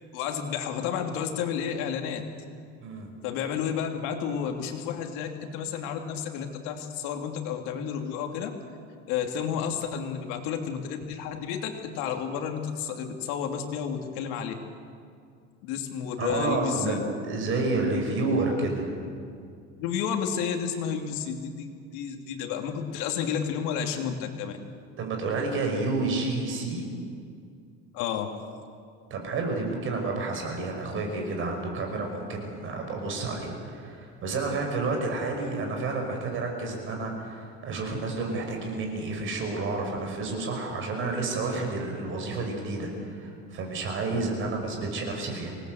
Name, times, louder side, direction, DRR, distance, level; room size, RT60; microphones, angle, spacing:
voice 1, 0.1-2.3 3.2-8.6 9.1-14.5 15.6-17.0 19.8-24.5 27.9-28.4, left 7 dB, 80° left, 4 dB, 2.9 m, -31 dB
voice 2, 16.2-18.9 25.0-26.9 29.1-45.5, right 3 dB, 40° right, 2 dB, 5.9 m, -30 dB
26.0 x 19.5 x 8.0 m, 2.3 s
cardioid pair, 155°, 31 cm